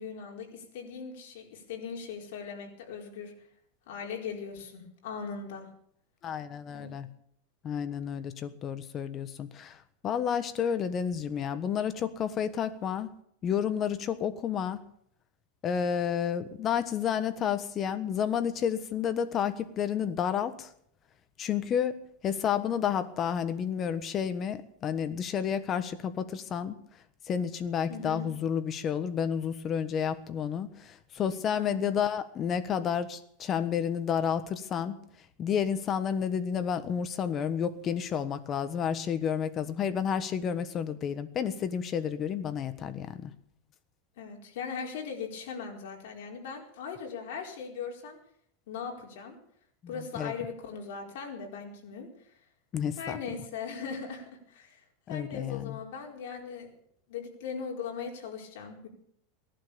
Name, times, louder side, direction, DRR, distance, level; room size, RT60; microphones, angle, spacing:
voice 1, 0.0-3.3 3.9-5.7 6.7-7.0 27.9-28.3 31.6-32.0 44.2-48.2 48.7-49.4 49.9-52.1 53.0-56.7 57.1-58.9, left 6 dB, 65° left, 1 dB, 4.6 m, -39 dB
voice 2, 6.2-7.1 7.6-9.8 10.0-13.1 13.4-14.8 15.6-20.7 21.4-22.0 22.2-26.8 27.3-35.0 35.4-43.3 49.8-50.3 52.7-53.2 55.1-55.8, left 8 dB, 25° left, 11 dB, 1.3 m, -30 dB
18.0 x 11.5 x 7.0 m, 0.68 s
supercardioid pair, 155°, 0 cm